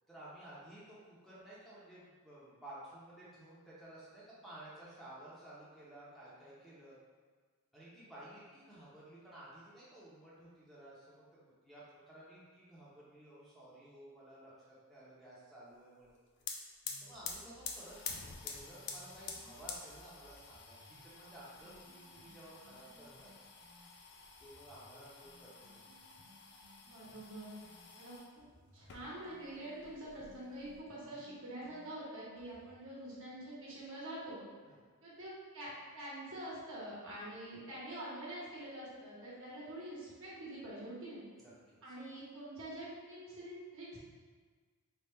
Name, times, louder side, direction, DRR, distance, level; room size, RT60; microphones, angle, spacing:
voice 1, 0.1-7.0 7.7-16.2 17.0-23.5 24.4-25.8 34.6-34.8 41.4-41.9, right 1 dB, ahead, -9 dB, 0.7 m, -54 dB
sound 1, 16.1-16.2 16.4-28.3 28.8-29.5 29.8-30.8, left 5 dB, 50° left, 0.4 m, -49 dB
sound 2, 16.8-23.9 24.4-27.9 28.4-32.8, equal, 45° right, 0.7 m, -63 dB
voice 2, 26.9-27.5 28.0-28.4 28.7-34.4 35.0-41.2 41.8-44.0, right 1 dB, 60° right, -7 dB, 1.2 m, -46 dB
3.4 x 2.3 x 4.2 m, 1.5 s
head